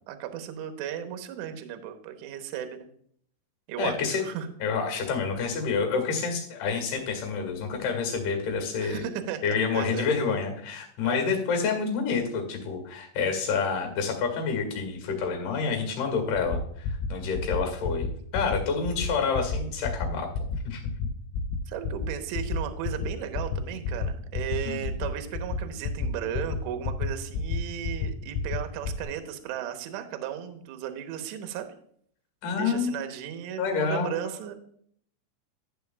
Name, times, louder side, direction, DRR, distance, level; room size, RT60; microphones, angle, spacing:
voice 1, 0.1-2.9 3.7-4.5 8.8-10.1 11.0-11.3 21.7-31.7 32.5-34.5, right 9 dB, 75° right, 6 dB, 2.8 m, -35 dB
voice 2, 3.8-4.2 4.6-9.0 9.4-20.3 20.6-20.8 24.6-24.8 32.4-33.0 33.6-34.1, left 5 dB, 50° left, 4 dB, 2.9 m, -28 dB
sound 1, 16.4-16.6 16.8-17.1 17.3-17.6 17.8-18.1 18.3-18.6 18.8-19.1 19.3-19.6 19.8-20.1 20.3-20.6 20.8-21.1 21.3-21.6 21.8-22.1 22.3-22.6 22.8-23.1 23.3-23.6 23.8-24.1 24.3-24.6 24.8-25.1 25.3-25.6 25.8-26.1 26.3-26.6 26.8-27.1 27.3-27.6 27.8-28.1 28.3-28.6 28.8-29.0, left 6 dB, 85° left, 2.9 m, -29 dB
12.0 x 8.4 x 2.3 m, 0.63 s
omnidirectional pair, 5.7 m